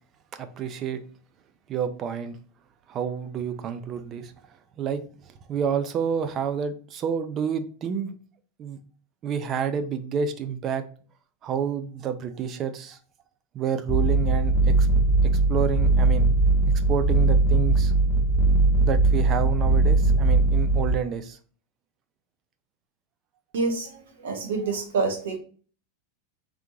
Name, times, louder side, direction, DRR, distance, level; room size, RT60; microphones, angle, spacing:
voice 1, 0.4-1.0 1.7-2.4 2.9-4.3 4.8-8.1 8.6-8.8 9.2-10.8 11.4-13.0 13.5-14.9 15.2-16.3 16.7-17.9 18.8-21.4, right 7 dB, 30° right, 10 dB, 0.5 m, -29 dB
sound 1, 13.9-21.0, right 2 dB, 15° left, 0.5 m, -20 dB
voice 2, 23.5-25.4, right 4 dB, 90° right, 3 dB, 1.4 m, -27 dB
3.7 x 3.4 x 3.1 m, 0.40 s
supercardioid pair, 150°, 0 cm